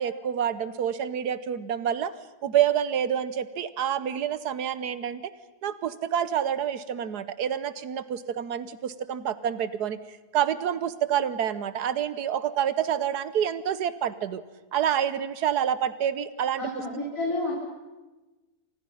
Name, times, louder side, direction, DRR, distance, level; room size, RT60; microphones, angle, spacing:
voice 1, 0.0-2.1 2.4-5.3 5.6-14.4 14.7-16.7, right 9 dB, 90° right, 14 dB, 1.5 m, -28 dB
voice 2, 16.6-17.5, left 2 dB, 55° left, -3 dB, 4.6 m, -30 dB
29.5 x 26.0 x 5.6 m, 1.2 s
omnidirectional pair, 1.7 m